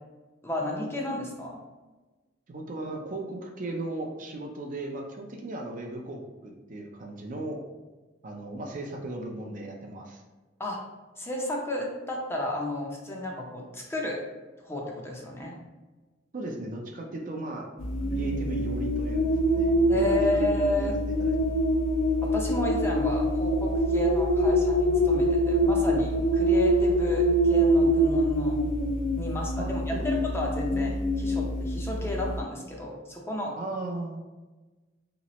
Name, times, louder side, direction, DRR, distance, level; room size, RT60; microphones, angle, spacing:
voice 1, 0.4-1.6 10.6-10.8 11.2-14.2 14.6-15.5 19.9-20.9 22.2-28.6 29.1-33.5, left 1 dB, 15° left, -2 dB, 0.5 m, -32 dB
voice 2, 2.5-7.6 8.2-10.2 16.3-17.7 18.1-20.5 20.8-21.4 29.6-30.1 33.5-34.2, right 1 dB, 45° right, 1 dB, 0.4 m, -37 dB
sound 1, 17.8-32.4, equal, 70° left, 0.5 m, -25 dB
3.1 x 3.0 x 2.9 m, 1.2 s
head